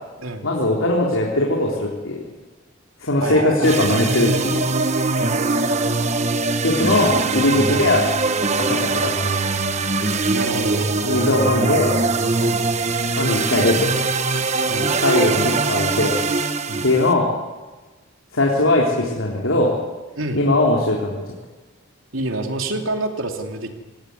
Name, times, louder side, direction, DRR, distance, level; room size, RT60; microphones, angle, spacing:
voice 1, 0.4-2.2 3.0-4.6 6.6-8.0 8.6-9.1 11.0-11.9 13.2-14.0 15.0-16.2 16.8-17.3 18.3-19.8 20.3-21.2, left 2 dB, 85° left, -2 dB, 3.7 m, -19 dB
voice 2, 3.2-3.9 7.1-7.9 10.3-10.9 12.4-12.7 14.7-15.0 16.7-16.9 20.2-20.4 22.1-23.7, right 2 dB, 80° right, 4 dB, 3.1 m, -27 dB
sound 1, 3.6-17.1, right 3 dB, 35° right, 1.2 m, -22 dB
26.0 x 17.0 x 9.5 m, 1.3 s
head